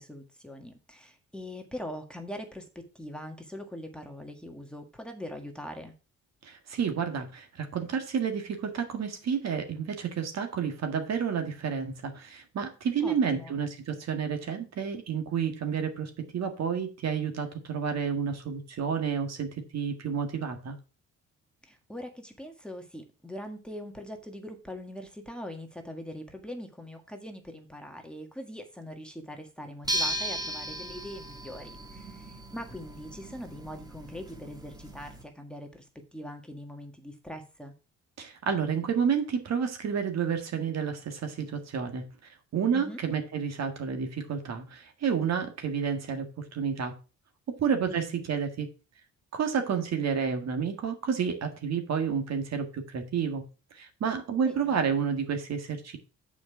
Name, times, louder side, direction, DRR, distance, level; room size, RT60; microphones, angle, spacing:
voice 1, 0.0-5.9 13.0-13.5 21.6-37.7 42.7-43.0 47.8-48.2 54.4-54.8, equal, 5° left, 4 dB, 1.6 m, -42 dB
voice 2, 6.4-20.8 38.2-42.0 42.5-46.3 46.5-47.0 47.6-48.7 49.3-53.4 53.7-56.0, right 6 dB, 60° right, 6 dB, 1.8 m, -30 dB
sound 1, 29.8-35.2, right 1 dB, 15° right, 1.6 m, -36 dB
7.0 x 5.1 x 5.6 m, 0.33 s
cardioid pair, 90°, 30 cm